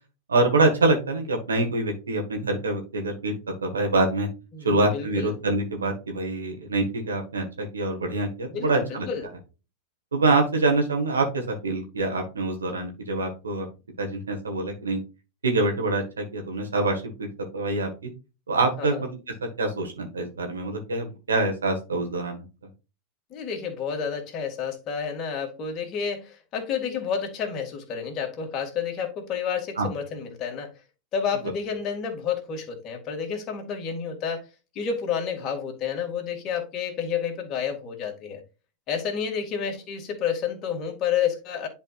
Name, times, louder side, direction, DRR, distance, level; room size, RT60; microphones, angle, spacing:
voice 1, 0.3-3.3 3.6-4.3 4.6-9.1 10.1-13.7 14.0-15.0 15.4-17.3 17.5-18.1 18.5-19.2 19.6-22.4 29.8-29.9, right 2 dB, 80° right, 1.7 m, -25 dB
voice 2, 4.5-5.3 8.5-9.3 18.8-19.0 23.3-30.7 31.1-34.4 34.7-38.4 38.9-41.7, left 7 dB, 40° left, 2.3 m, -30 dB
10.5 x 4.4 x 2.5 m
figure-of-eight pair, 90°, 0 cm